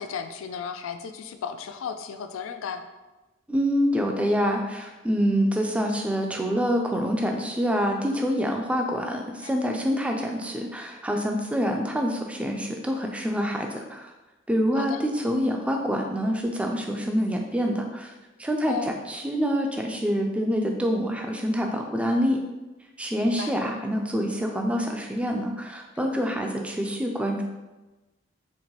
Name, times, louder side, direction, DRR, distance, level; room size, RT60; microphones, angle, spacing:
voice 1, 0.0-2.8 9.4-9.5 14.7-15.0 18.7-19.0 23.2-23.5 26.0-26.2, left 6 dB, 90° left, 8 dB, 0.3 m, -35 dB
voice 2, 3.5-14.1 14.5-18.1 18.4-22.4 23.0-27.4, equal, 5° right, 2 dB, 0.3 m, -26 dB
4.5 x 2.9 x 2.9 m, 1.1 s
head